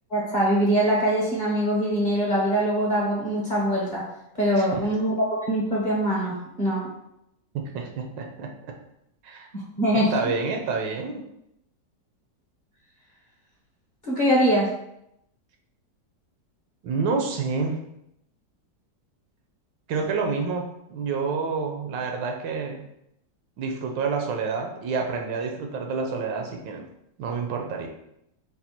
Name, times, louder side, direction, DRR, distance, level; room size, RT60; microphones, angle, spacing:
voice 1, 0.1-4.0 4.4-6.9 9.5-10.1 14.0-14.7, right 1 dB, 35° left, -5 dB, 0.9 m, -23 dB
voice 2, 7.7-8.5 9.2-9.5 9.9-11.2 16.8-17.8 19.9-22.9 23.6-26.9 27.2-27.9, right 4 dB, 85° right, 2 dB, 1.4 m, -28 dB
4.0 x 2.3 x 4.3 m, 0.80 s
omnidirectional pair, 1.9 m